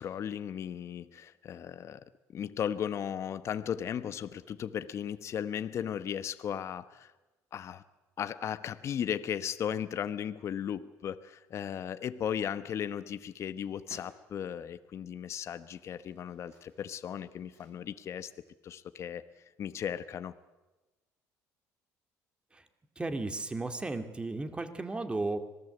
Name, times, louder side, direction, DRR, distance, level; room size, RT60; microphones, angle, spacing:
voice 1, 0.0-2.0 2.3-7.1 7.5-7.8 8.2-18.3 18.6-19.2 19.6-20.3, left 9 dB, 45° left, 12 dB, 1.1 m, -36 dB
sound 1, 12.8-14.2 14.9-15.0 15.5-18.2 18.5-18.6, right 4 dB, 80° right, 8.0 m, -62 dB
voice 2, 23.0-25.4, right 2 dB, 15° right, 8 dB, 2.3 m, -34 dB
26.0 x 19.0 x 8.1 m, 1.1 s
cardioid pair, 110°, 6 cm